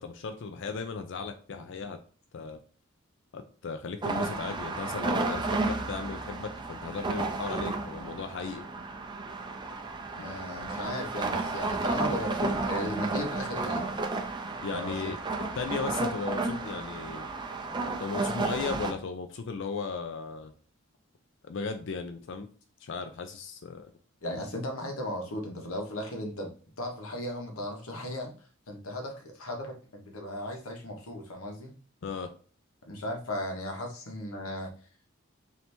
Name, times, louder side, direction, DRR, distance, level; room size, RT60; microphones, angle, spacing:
voice 1, 0.0-2.0 2.3-2.6 3.3-8.7 14.6-15.2 15.6-17.3 18.0-20.5 21.4-22.5 22.8-23.9 32.0-32.3, left 5 dB, 60° left, 7 dB, 0.4 m, -36 dB
sound 1, 4.0-18.9, right 3 dB, 20° right, 0.4 m, -32 dB
voice 2, 10.1-13.8 14.1-14.2 14.7-15.1 24.2-26.5 26.8-28.3 28.7-31.7 32.8-34.7, left 1 dB, 90° left, 2 dB, 1.1 m, -36 dB
3.3 x 2.8 x 4.3 m, 0.41 s
head